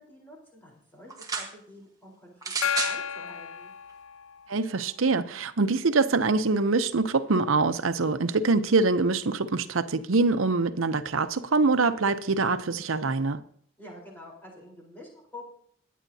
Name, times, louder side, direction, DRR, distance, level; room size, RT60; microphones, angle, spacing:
voice 1, 0.0-2.4 2.8-3.7 13.8-15.5, left 1 dB, 10° left, 4.0 m, -47 dB
Gun loading, 1.1-1.5 2.4-3.0 3.9-4.0, right 5 dB, 15° right, 1.3 m, -31 dB
Gong, 2.6-4.6, left 8 dB, 80° left, 0.4 m, -32 dB
voice 2, 4.5-13.4, right 3 dB, 70° right, 0.7 m, -24 dB
22.0 x 9.3 x 2.8 m
head